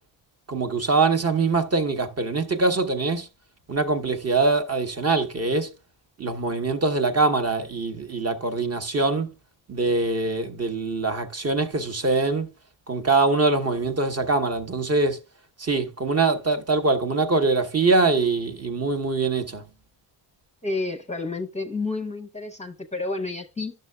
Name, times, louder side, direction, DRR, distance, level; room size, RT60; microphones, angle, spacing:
voice 1, 0.5-3.3 3.7-5.7 6.2-9.3 9.7-12.5 12.9-15.2 15.6-19.6, right 3 dB, 30° right, 0.9 m, -23 dB
voice 2, 20.6-23.7, left 3 dB, 15° left, 0.7 m, -30 dB
11.5 x 6.6 x 2.2 m
cardioid pair, 105°, 48 cm